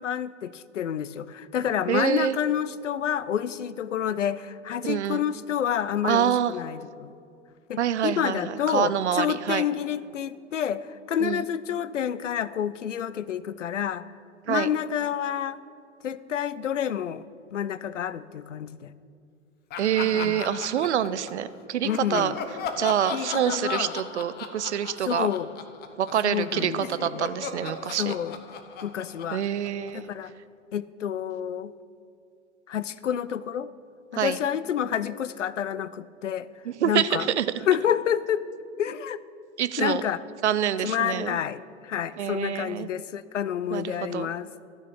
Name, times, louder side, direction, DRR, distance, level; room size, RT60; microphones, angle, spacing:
voice 1, 0.0-7.1 7.7-14.1 14.5-15.6 16.0-17.3 17.5-18.9 20.1-20.4 21.8-22.4 23.1-23.9 25.0-25.5 26.2-27.2 28.0-28.4 28.8-29.4 29.9-30.3 30.7-31.7 32.7-33.7 34.1-36.5 36.8-37.3 37.7-38.4 38.8-39.2 39.8-40.2 40.8-44.5, left 9 dB, 75° left, 18 dB, 0.5 m, -29 dB
voice 2, 1.9-2.4 4.8-5.2 6.0-6.5 7.8-9.6 11.2-11.4 14.5-14.7 19.8-22.3 22.8-25.3 26.0-28.2 29.3-30.1 34.2-34.4 36.7-37.5 39.6-40.0 40.4-41.4 42.2-42.9 43.7-44.3, right 10 dB, 65° right, 15 dB, 0.6 m, -26 dB
Laughter, 19.7-21.5 21.9-26.3 26.6-30.1, left 6 dB, 25° left, 0.9 m, -37 dB
12.5 x 6.4 x 8.5 m, 2.5 s
figure-of-eight pair, 90°, 37 cm